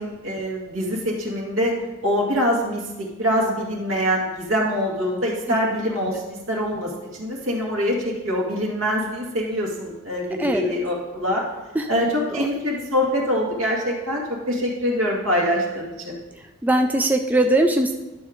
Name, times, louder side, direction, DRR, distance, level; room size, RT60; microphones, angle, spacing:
voice 1, 0.0-1.7 2.0-11.4 11.9-16.2, equal, 75° right, -2 dB, 2.0 m, -24 dB
voice 2, 10.4-10.7 11.7-11.9 12.3-12.5 16.6-17.9, right 1 dB, 10° right, 4 dB, 0.3 m, -20 dB
11.5 x 6.6 x 3.6 m, 1.1 s
head